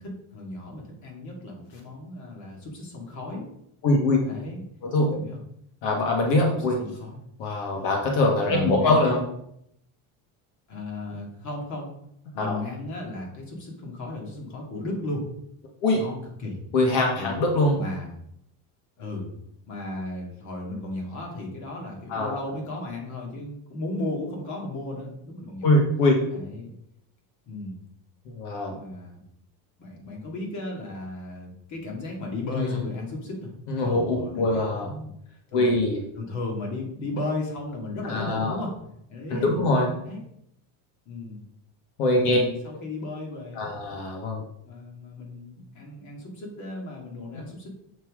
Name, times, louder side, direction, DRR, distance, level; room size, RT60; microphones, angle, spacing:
voice 1, 0.0-3.5 4.2-4.6 5.1-5.4 6.5-7.2 7.7-7.9 8.5-9.2 10.7-11.9 12.3-15.3 15.9-16.6 17.1-17.4 17.7-18.1 19.0-19.3 19.7-25.8 26.3-26.7 27.5-27.8 28.7-29.2 29.8-33.5 33.8-35.1 35.5-35.6 36.2-38.7 39.1-39.5 40.0-40.2 41.1-41.4 42.2-43.7 44.6-47.7, left 2 dB, 40° left, 0 dB, 2.3 m, -35 dB
voice 2, 3.8-4.2 4.8-5.2 5.8-6.8 7.4-9.2 12.4-12.6 15.8-16.0 16.7-17.8 22.1-22.4 25.6-26.2 28.3-28.8 32.5-32.8 33.7-34.9 35.5-36.0 38.0-38.6 39.3-39.9 42.0-42.4 43.6-44.4, left 2 dB, 80° left, 0 dB, 1.7 m, -23 dB
7.5 x 6.0 x 3.6 m, 0.74 s
cardioid pair, 145°, 42 cm